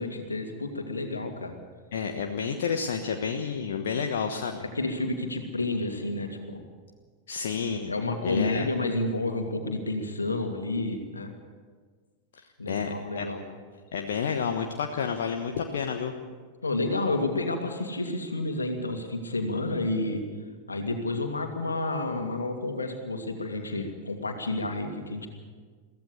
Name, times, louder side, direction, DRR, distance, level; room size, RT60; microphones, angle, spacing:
voice 1, 0.0-1.5 4.7-6.6 7.9-11.3 12.6-13.4 16.6-20.2 20.7-25.3, left 2 dB, 80° left, 4 dB, 2.5 m, -30 dB
voice 2, 1.9-4.6 7.3-7.9 8.2-8.7 12.4-13.3 13.9-16.1, left 6 dB, 60° left, 4 dB, 1.2 m, -30 dB
23.0 x 16.5 x 7.0 m, 1.5 s
figure-of-eight pair, 90°, 0 cm